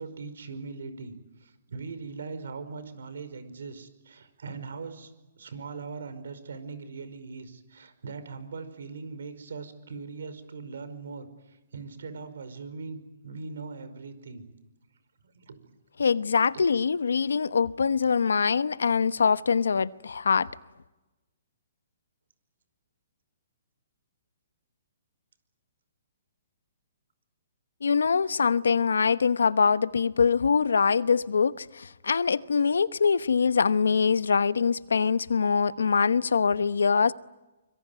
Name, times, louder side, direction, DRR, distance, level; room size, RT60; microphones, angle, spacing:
voice 1, 0.0-14.4 15.3-15.7, right 4 dB, 75° right, 5.2 m, -40 dB
voice 2, 16.0-20.5 27.8-37.1, left 5 dB, 85° left, 1.0 m, -23 dB
25.5 x 22.5 x 9.4 m
hypercardioid pair, 145°, 0 cm